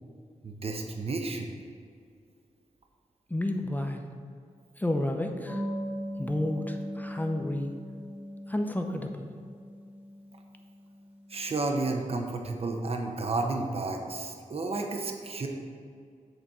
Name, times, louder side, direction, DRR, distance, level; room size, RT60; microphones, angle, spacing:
voice 1, 0.4-1.5 11.3-15.5, right 3 dB, 50° right, 3 dB, 0.9 m, -31 dB
voice 2, 3.3-4.1 4.8-5.6 6.2-7.7 8.5-9.3, left 1 dB, 15° left, 4 dB, 0.8 m, -31 dB
sound 1, 5.5-11.7, equal, 10° right, 2.0 m, -39 dB
8.0 x 4.1 x 6.3 m, 2.2 s
cardioid pair, 65°, 13 cm